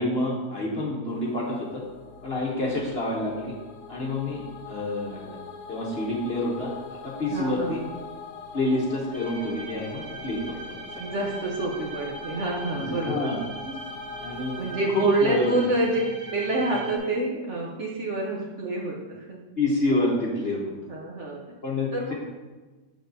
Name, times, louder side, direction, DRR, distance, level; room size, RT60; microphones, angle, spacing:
voice 1, 0.0-1.8 2.2-3.5 3.9-5.4 5.7-6.7 7.0-7.8 8.5-11.2 12.7-13.4 14.2-14.5 14.9-15.6 19.6-20.7 21.6-22.1, left 2 dB, 45° left, -3 dB, 0.9 m, -28 dB
sound 1, 1.1-15.5, left 5 dB, 75° left, 1.2 m, -42 dB
voice 2, 7.3-7.8 11.0-13.3 14.6-16.0 16.3-19.4 20.9-21.4 21.9-22.1, right 2 dB, 55° right, -2 dB, 0.9 m, -27 dB
sound 2, 9.1-17.0, right 2 dB, 10° left, 1.4 m, -41 dB
6.4 x 6.3 x 2.7 m, 1.2 s
omnidirectional pair, 1.8 m